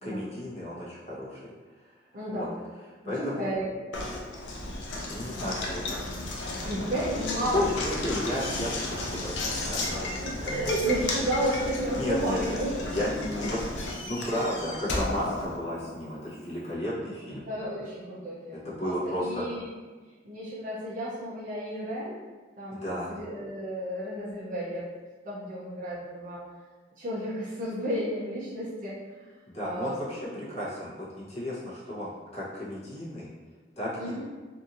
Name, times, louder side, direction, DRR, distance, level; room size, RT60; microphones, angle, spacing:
voice 1, 0.0-1.4 2.3-2.5 3.0-3.5 5.1-6.0 7.4-10.1 11.9-12.6 12.9-17.5 18.5-19.5 22.7-23.1 29.5-33.3 33.8-34.2, left 1 dB, 35° left, -8 dB, 0.8 m, -33 dB
voice 2, 2.1-2.6 3.0-3.7 6.5-7.5 7.9-8.0 10.2-12.7 17.5-19.7 20.2-22.1 22.6-24.9 25.2-26.4 27.0-29.3 29.6-30.0 34.0-34.2, right 1 dB, 45° right, -8 dB, 0.6 m, -32 dB
Knock, 3.9-16.1, left 2 dB, 85° left, 0.5 m, -34 dB
sound 1, 9.7-20.3, equal, 15° right, 1.1 m, -49 dB
2.8 x 2.6 x 2.5 m, 1.4 s
head